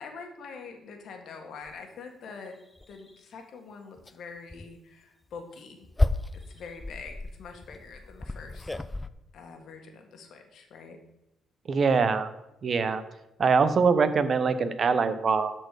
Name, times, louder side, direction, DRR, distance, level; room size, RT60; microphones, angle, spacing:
voice 1, 0.0-2.5 2.9-5.9 6.5-8.7 9.3-11.0, left 5 dB, 70° left, 4 dB, 1.5 m, -44 dB
sound 1, 1.7-1.8 2.3-2.4 2.8-3.2 4.0-4.2 4.5-4.7 5.3-9.1, left 2 dB, 15° left, 0.4 m, -32 dB
voice 2, 11.7-12.3 12.6-13.0 13.4-15.5, right 5 dB, 45° right, 12 dB, 0.8 m, -23 dB
12.5 x 4.5 x 4.9 m, 0.88 s
cardioid pair, 90°, 0 cm